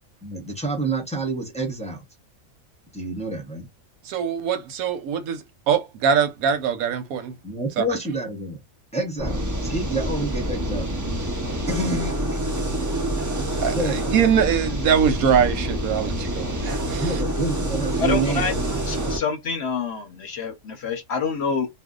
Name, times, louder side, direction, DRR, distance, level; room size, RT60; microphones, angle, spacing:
voice 1, 0.2-2.0 2.9-3.7 7.4-8.6 8.9-11.3 11.7-12.2 13.7-14.0 17.0-18.8, right 2 dB, 5° left, 0.6 m, -28 dB
voice 2, 4.0-7.3 7.8-7.9 13.6-17.2, right 7 dB, 85° right, 1.1 m, -23 dB
sound 1, 9.2-19.2, right 1 dB, 30° right, 0.3 m, -27 dB
voice 3, 18.0-18.5 18.9-21.7, left 5 dB, 60° left, 0.8 m, -27 dB
2.6 x 2.2 x 3.7 m
omnidirectional pair, 1.5 m